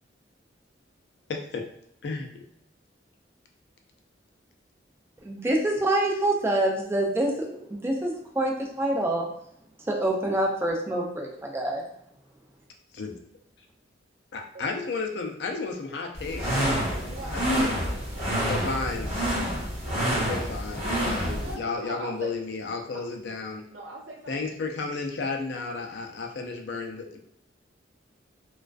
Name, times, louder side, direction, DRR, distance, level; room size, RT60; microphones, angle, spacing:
voice 1, 1.3-1.6 2.0-2.4 12.9-13.2 14.3-16.6 17.3-17.8 18.4-19.1 20.2-23.6 24.3-27.2, left 4 dB, 60° left, 3 dB, 0.4 m, -33 dB
voice 2, 5.2-9.3 9.9-11.8, right 1 dB, 15° right, -1 dB, 0.4 m, -26 dB
sound 1, 16.2-21.5, equal, 35° right, 0.8 m, -27 dB
voice 3, 16.8-18.4 18.8-19.0 21.4-22.3 23.7-24.5, right 1 dB, 70° right, 0 dB, 0.6 m, -42 dB
2.4 x 2.2 x 2.2 m, 0.73 s
head